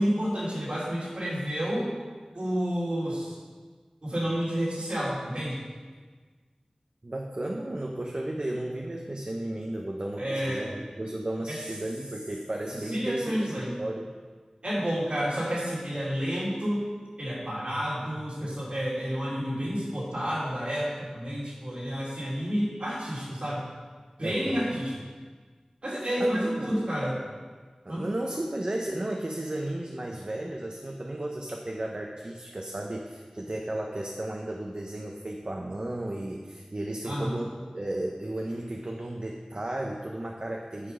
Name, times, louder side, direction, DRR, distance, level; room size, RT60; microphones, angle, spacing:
voice 1, 0.0-1.9 2.3-3.4 4.0-5.6 10.2-10.7 11.5-11.6 12.9-13.7 14.6-16.8 17.2-23.6 24.2-24.9 25.8-27.2 27.9-28.0 37.0-37.4, equal, 65° right, -6 dB, 3.1 m, -30 dB
voice 2, 7.0-14.1 24.2-24.8 26.2-26.8 27.8-40.9, right 1 dB, 50° right, 1 dB, 0.8 m, -34 dB
9.7 x 5.8 x 5.4 m, 1.5 s
wide cardioid pair, 45°, 2 cm